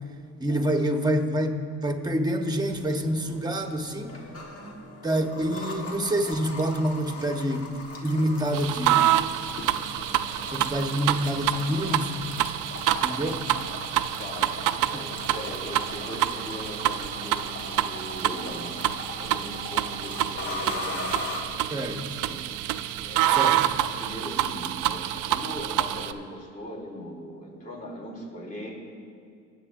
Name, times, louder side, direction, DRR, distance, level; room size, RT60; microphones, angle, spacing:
voice 1, 0.4-4.2 5.0-7.6 8.0-9.1 10.5-12.1 13.0-13.4 14.9-15.0 21.7-22.0 23.3-23.6, equal, 15° right, 4 dB, 1.1 m, -27 dB
sound 1, 2.7-21.4, left 2 dB, 50° left, 1.5 m, -39 dB
sound 2, 8.5-26.1, right 12 dB, 85° right, 0.5 m, -27 dB
voice 2, 14.2-14.6 14.9-21.1 21.9-28.7, equal, 25° left, -2 dB, 3.0 m, -40 dB
20.5 x 8.1 x 2.6 m, 2.4 s
cardioid pair, 90°, 30 cm